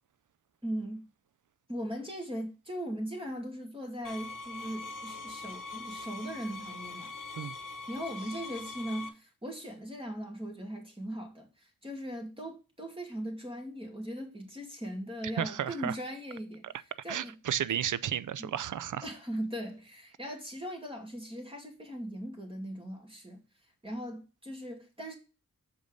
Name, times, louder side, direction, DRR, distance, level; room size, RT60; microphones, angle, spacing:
voice 1, 0.6-1.0 1.7-7.1 7.9-16.6 17.0-17.3 17.7-17.8 18.4-18.5 19.0-23.4 23.8-25.1, equal, 15° right, 2.5 m, -39 dB
sound 1, 4.0-9.1, left 3 dB, 70° left, 1.0 m, -42 dB
voice 2, 15.4-15.9 17.1-19.1, right 9 dB, 65° right, 0.5 m, -33 dB
6.8 x 5.1 x 3.9 m
cardioid pair, 50°, 33 cm